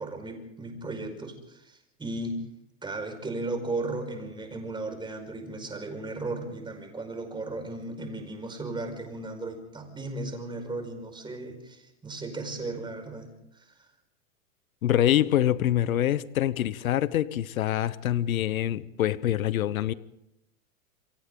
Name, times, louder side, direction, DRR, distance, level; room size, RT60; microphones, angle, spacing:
voice 1, 0.0-2.4 2.8-13.3 13.5-13.9, right 2 dB, 10° right, 5 dB, 5.1 m, -36 dB
voice 2, 14.8-19.9, left 12 dB, 90° left, 17 dB, 1.0 m, -25 dB
28.0 x 25.0 x 3.8 m, 0.85 s
hypercardioid pair, 130°, 40 cm